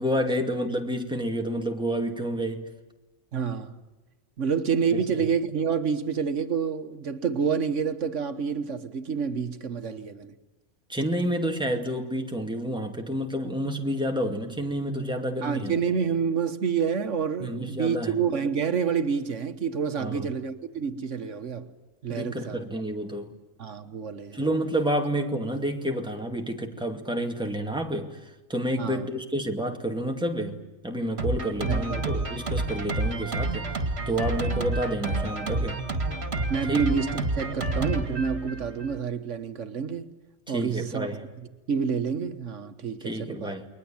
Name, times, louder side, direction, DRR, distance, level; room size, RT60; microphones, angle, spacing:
voice 1, 0.0-2.7 10.9-15.7 17.4-18.2 20.0-20.3 22.1-23.3 24.3-33.7 34.1-35.8 36.7-36.8 40.5-41.2 43.0-43.7, equal, 5° right, 2.3 m, -29 dB
voice 2, 3.3-3.8 4.4-10.3 15.4-21.7 22.0-22.6 23.6-24.4 28.8-29.1 31.6-32.3 36.5-40.1 40.5-41.1 41.3-43.6, right 6 dB, 75° right, 1.6 m, -28 dB
Drum kit, 31.2-39.0, right 2 dB, 60° right, 2.6 m, -29 dB
30.0 x 22.0 x 8.9 m
omnidirectional pair, 1.3 m